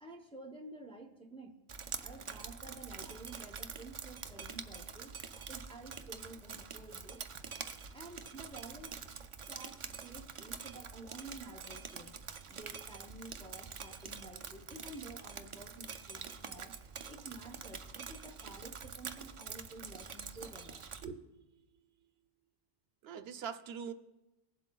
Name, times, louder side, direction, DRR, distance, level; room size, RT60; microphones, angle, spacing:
voice 1, 0.0-1.6 2.0-7.2 7.9-9.0 9.5-12.2 12.5-16.8 17.1-20.8, right 2 dB, 5° left, 3 dB, 0.6 m, -51 dB
Drip, 1.7-21.0, right 6 dB, 50° right, 0.3 m, -46 dB
voice 2, 21.0-21.4 23.0-23.9, right 7 dB, 80° right, 9 dB, 0.8 m, -43 dB
20.0 x 7.7 x 2.2 m, 1.0 s
omnidirectional pair, 1.0 m